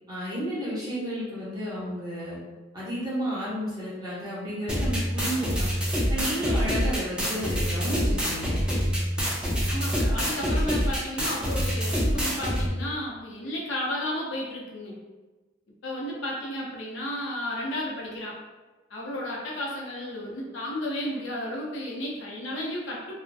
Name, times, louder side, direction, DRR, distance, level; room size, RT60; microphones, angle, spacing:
voice 1, 0.1-2.4 2.7-5.7 6.1-8.5, equal, 20° right, -9 dB, 0.8 m, -32 dB
sound 1, 4.7-12.7, equal, 5° right, 0.3 m, -26 dB
voice 2, 9.6-15.0 15.8-18.4 18.9-23.1, left 1 dB, 75° left, -4 dB, 0.6 m, -33 dB
2.5 x 2.1 x 2.4 m, 1.2 s
head